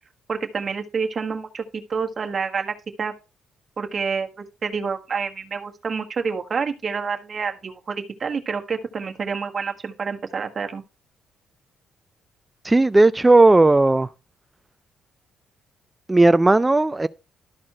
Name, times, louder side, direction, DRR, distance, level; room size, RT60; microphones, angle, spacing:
voice 1, 0.3-1.6 1.9-3.1 3.8-10.8, right 5 dB, 45° right, 1.5 m, -28 dB
voice 2, 12.6-14.1 16.1-17.1, right 2 dB, 15° right, 0.4 m, -15 dB
12.5 x 4.3 x 4.3 m
cardioid pair, 90°, 0 cm